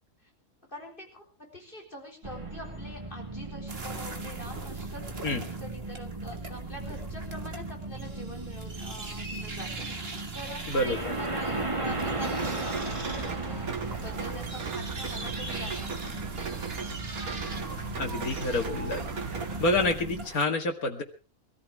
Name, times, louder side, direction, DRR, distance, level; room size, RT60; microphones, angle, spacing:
voice 1, 0.7-5.0 5.4-10.0 10.3-16.2, equal, 35° left, 2 dB, 4.1 m, -44 dB
sound 1, 2.2-20.3, right 2 dB, 20° right, 2.1 m, -37 dB
sound 2, 3.7-20.4, right 3 dB, 45° right, 1.9 m, -42 dB
voice 2, 10.7-11.1 18.0-19.0 19.6-21.0, left 2 dB, 85° left, 2 dB, 2.5 m, -28 dB
Rain, 11.9-19.9, right 5 dB, 80° right, 2.0 m, -38 dB
23.5 x 14.0 x 3.5 m, 0.32 s
omnidirectional pair, 1.5 m